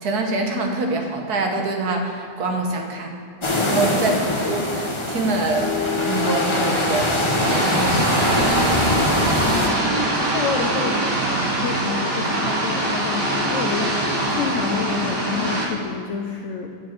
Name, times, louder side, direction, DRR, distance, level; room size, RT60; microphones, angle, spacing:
voice 1, 0.0-3.1 3.5-7.1 7.5-8.3, right 2 dB, 65° right, 3 dB, 1.6 m, -25 dB
sound 1, 3.4-9.7, left 1 dB, 20° left, 1.0 m, -23 dB
sound 2, 5.5-10.3, left 4 dB, 90° left, 0.4 m, -32 dB
sound 3, 7.4-15.7, right 1 dB, 35° right, 1.5 m, -23 dB
voice 2, 9.5-11.0 11.6-16.7, left 6 dB, 60° left, 2 dB, 0.8 m, -29 dB
9.1 x 6.8 x 6.0 m, 2.3 s
omnidirectional pair, 1.8 m